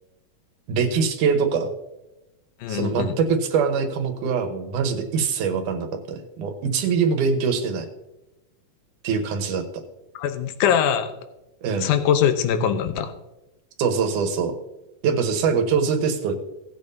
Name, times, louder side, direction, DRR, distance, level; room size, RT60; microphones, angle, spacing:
voice 1, 0.7-1.7 2.7-7.9 9.0-9.6 11.6-11.9 13.8-14.6 15.0-16.3, right 5 dB, 65° right, 6 dB, 2.4 m, -23 dB
voice 2, 2.6-3.2 10.2-11.1 11.8-13.1, left 8 dB, 75° left, 8 dB, 2.2 m, -22 dB
17.5 x 8.7 x 2.8 m, 0.97 s
omnidirectional pair, 4.2 m